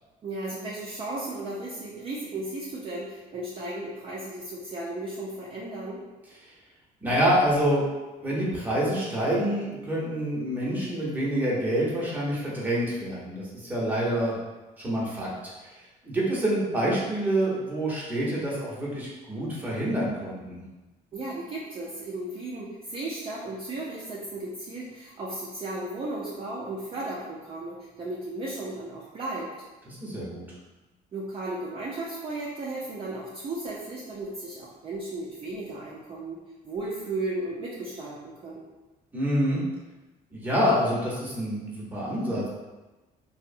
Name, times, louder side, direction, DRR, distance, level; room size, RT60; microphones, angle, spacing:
voice 1, 0.2-6.0 21.1-29.5 31.1-36.4 36.6-38.7, right 2 dB, 35° right, -6 dB, 0.4 m, -35 dB
voice 2, 7.0-7.8 8.2-14.3 14.8-15.3 15.6-15.7 16.0-20.6 29.9-30.5 39.1-39.6 40.3-42.5, equal, 10° right, -6 dB, 0.8 m, -27 dB
2.6 x 2.0 x 2.6 m, 1.1 s
cardioid pair, 110°, 17 cm